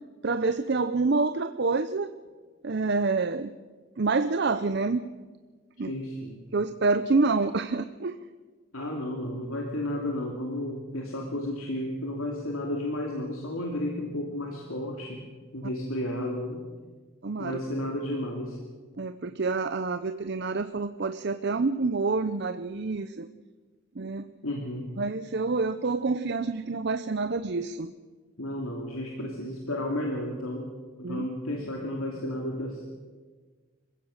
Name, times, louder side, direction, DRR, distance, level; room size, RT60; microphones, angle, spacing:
voice 1, 0.2-2.1 2.6-3.5 4.0-5.0 5.8-5.9 6.5-8.2 17.2-17.6 19.0-23.3 24.0-24.3 25.0-27.9 31.0-31.3, right 3 dB, 50° right, 11 dB, 0.6 m, -27 dB
voice 2, 5.9-6.4 8.7-15.2 15.5-16.6 17.4-18.6 24.4-24.9 28.4-30.7 31.0-32.8, left 1 dB, 80° left, 0 dB, 2.7 m, -32 dB
26.0 x 16.0 x 6.5 m, 1.4 s
head